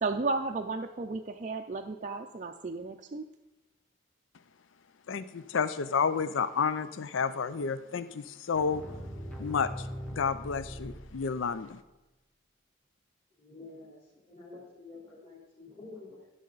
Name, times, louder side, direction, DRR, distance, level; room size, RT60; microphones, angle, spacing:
voice 1, 0.0-3.2, right 3 dB, 35° right, 4 dB, 0.4 m, -33 dB
voice 2, 5.1-8.8 9.4-9.7 10.1-11.8, left 6 dB, 70° left, 13 dB, 0.5 m, -30 dB
sound 1, 8.5-11.7, equal, 5° left, 1.0 m, -41 dB
voice 3, 13.4-14.0 14.3-16.3, left 3 dB, 30° left, -8 dB, 2.8 m, -48 dB
16.0 x 6.3 x 4.0 m, 1.1 s
head